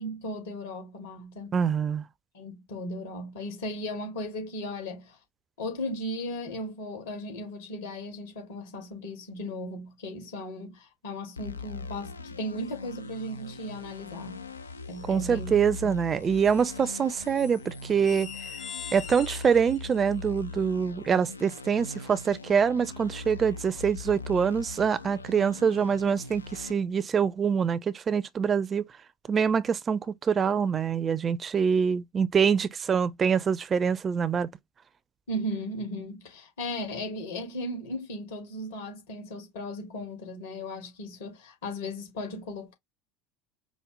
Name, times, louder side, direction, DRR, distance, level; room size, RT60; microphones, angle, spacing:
voice 1, 0.0-1.6 2.3-5.2 5.6-14.4 14.9-15.5 15.8-15.9 35.3-42.7, left 1 dB, 70° left, 1.8 m, -36 dB
voice 2, 1.5-2.0 15.1-18.3 18.9-28.9 29.3-34.5, right 6 dB, 30° right, 0.4 m, -25 dB
sound 1, 11.4-26.7, left 3 dB, 85° left, 0.4 m, -41 dB
sound 2, 13.3-13.9 14.1-15.3 16.2-20.5, left 8 dB, 50° left, 1.0 m, -44 dB
5.1 x 2.1 x 3.1 m
figure-of-eight pair, 70°, 0 cm